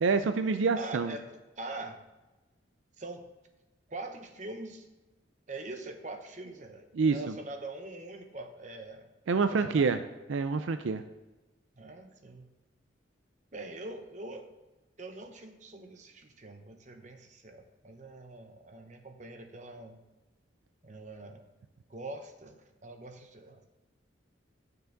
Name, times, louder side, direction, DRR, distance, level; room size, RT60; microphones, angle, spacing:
voice 1, 0.0-1.1 6.9-7.2 9.3-10.0 10.3-11.0, right 4 dB, 80° right, 9 dB, 0.4 m, -27 dB
voice 2, 0.8-2.0 3.0-3.3 3.9-4.9 5.5-9.1 9.5-9.9 11.8-12.5 13.5-14.5 15.0-20.0 20.8-21.5 21.9-23.7, right 2 dB, 40° right, 5 dB, 0.9 m, -43 dB
12.0 x 6.8 x 3.9 m, 1.1 s
head